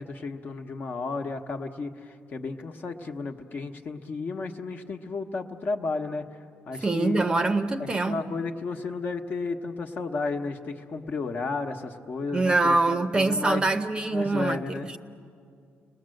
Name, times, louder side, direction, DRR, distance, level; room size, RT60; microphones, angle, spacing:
voice 1, 0.0-7.2 7.8-13.6 14.1-14.9, left 3 dB, 40° left, 1.2 m, -33 dB
voice 2, 6.8-8.2 12.3-14.8, right 3 dB, 20° right, 0.7 m, -24 dB
30.0 x 20.0 x 7.8 m
cardioid pair, 130°, 5 cm